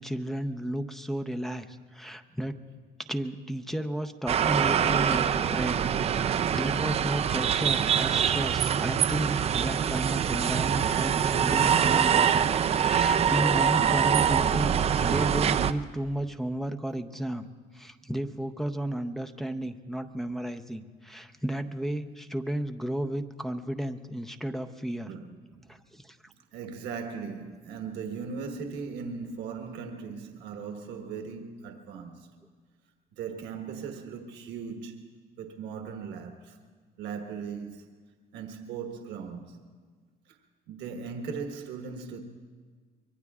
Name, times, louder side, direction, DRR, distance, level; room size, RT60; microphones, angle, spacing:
voice 1, 0.0-2.6 3.0-5.8 6.2-17.5 17.7-25.1 25.7-26.3, right 1 dB, ahead, 0.7 m, -33 dB
sound 1, 4.3-15.7, right 8 dB, 40° right, 0.5 m, -24 dB
voice 2, 25.1-25.6 26.5-32.3 33.1-35.1 35.4-36.6 37.0-37.9 38.3-39.7 40.3-40.4 40.7-42.2, right 5 dB, 85° right, 1.3 m, -38 dB
24.5 x 23.0 x 2.4 m
cardioid pair, 110°, 17 cm